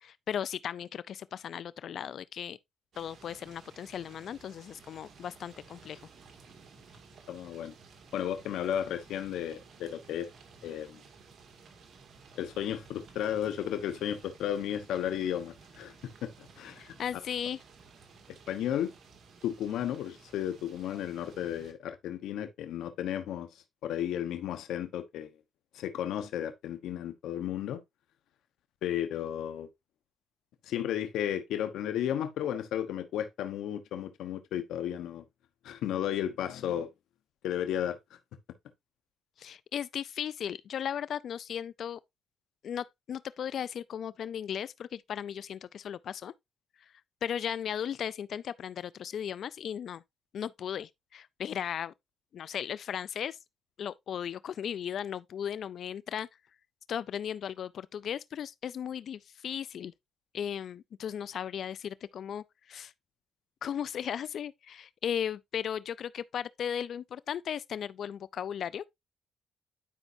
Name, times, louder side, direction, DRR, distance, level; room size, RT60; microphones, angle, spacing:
voice 1, 0.0-2.6 3.0-6.0 16.8-17.6 39.4-42.0 42.6-46.3 46.8-46.9 47.2-50.0 50.3-51.9 52.3-53.4 53.8-56.3 56.9-59.9 60.3-62.9 63.6-68.9, left 9 dB, 65° left, 0.4 m, -36 dB
sound 1, 2.9-21.7, right 5 dB, 60° right, 2.1 m, -55 dB
voice 2, 7.3-7.7 8.1-10.3 10.6-11.0 12.4-15.9 16.2-16.9 18.5-18.9 19.4-23.5 23.8-25.3 25.7-27.8 28.8-29.7 30.6-35.2 35.6-36.9 37.4-38.0, left 10 dB, 85° left, 1.0 m, -33 dB
11.0 x 5.4 x 2.7 m
cardioid pair, 90°, 0 cm